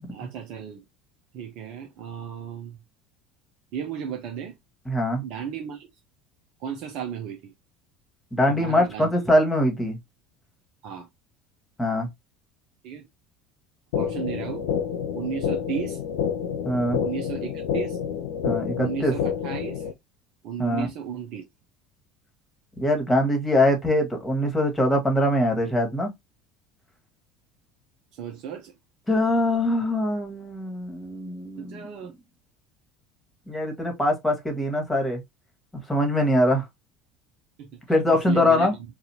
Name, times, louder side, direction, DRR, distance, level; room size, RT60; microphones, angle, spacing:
voice 1, 0.1-0.8 1.3-2.8 3.7-4.6 5.2-5.9 6.6-7.5 8.5-9.1 10.8-11.1 12.8-13.0 13.9-14.7 15.1-16.0 17.0-18.0 18.8-19.9 20.4-21.4 28.1-28.7 31.6-32.1 37.6-37.8 38.1-38.7, right 7 dB, 55° right, 0.6 m, -34 dB
voice 2, 4.9-5.2 8.3-10.0 11.8-12.1 16.6-17.0 18.4-19.1 20.6-20.9 22.8-26.1 29.1-31.9 33.5-35.2 35.9-36.6 37.9-38.7, left 1 dB, 10° left, 1.5 m, -23 dB
sound 1, 13.9-19.9, left 8 dB, 65° left, 0.5 m, -28 dB
4.1 x 2.5 x 2.6 m
figure-of-eight pair, 65°, 0 cm